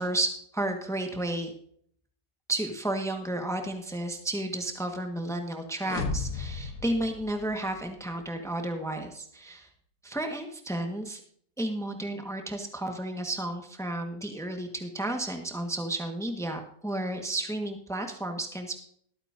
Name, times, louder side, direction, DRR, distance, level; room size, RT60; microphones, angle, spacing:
voice 1, 0.0-1.5 2.5-9.7 10.0-11.2 11.6-18.8, right 1 dB, ahead, 4 dB, 1.4 m, -32 dB
sound 1, 5.8-7.9, left 4 dB, 60° left, 1.5 m, -35 dB
21.5 x 8.8 x 2.7 m, 0.63 s
omnidirectional pair, 1.8 m